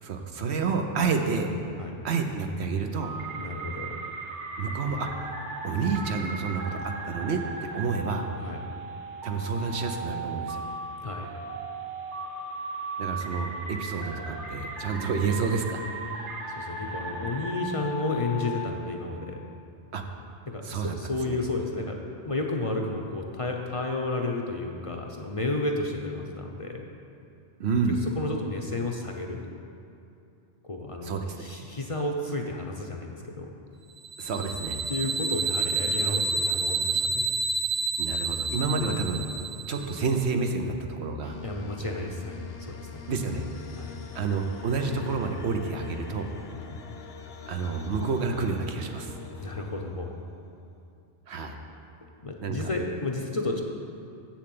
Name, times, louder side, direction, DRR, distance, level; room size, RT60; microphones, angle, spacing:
voice 1, 0.0-1.5 2.0-3.1 4.6-5.3 5.6-8.3 9.2-10.7 13.0-15.8 19.9-20.0 20.6-21.4 27.6-28.0 31.0-31.2 34.2-34.8 38.0-39.2 39.7-41.4 43.1-43.5 44.1-46.3 47.5-49.1 51.3-51.6 52.4-52.7, right 4 dB, 70° right, 4 dB, 1.1 m, -29 dB
sound 1, 3.0-18.7, right 2 dB, 90° right, 1.4 m, -37 dB
voice 2, 3.4-3.9 8.4-8.6 11.0-11.4 16.6-19.4 20.5-22.0 22.3-26.8 28.1-29.4 30.6-33.5 34.9-37.3 41.4-43.0 43.7-44.0 46.5-46.9 49.3-50.1 52.2-53.6, left 2 dB, 35° left, 1 dB, 0.7 m, -32 dB
sound 2, 34.0-40.0, right 3 dB, 50° right, 0.7 m, -29 dB
sound 3, 41.2-50.7, left 7 dB, 65° left, 0.9 m, -43 dB
7.8 x 7.2 x 7.7 m, 2.7 s
omnidirectional pair, 1.1 m